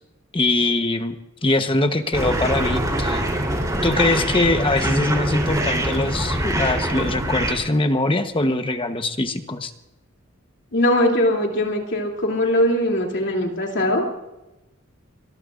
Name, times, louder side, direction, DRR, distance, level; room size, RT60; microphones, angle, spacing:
voice 1, 0.3-1.1 1.4-3.2 3.8-9.7, left 2 dB, 25° left, 7 dB, 1.1 m, -22 dB
sound 1, 2.1-7.5, right 1 dB, 15° right, 3.7 m, -24 dB
voice 2, 10.7-14.3, left 1 dB, 60° left, 0 dB, 3.0 m, -21 dB
24.5 x 22.0 x 2.6 m, 0.96 s
head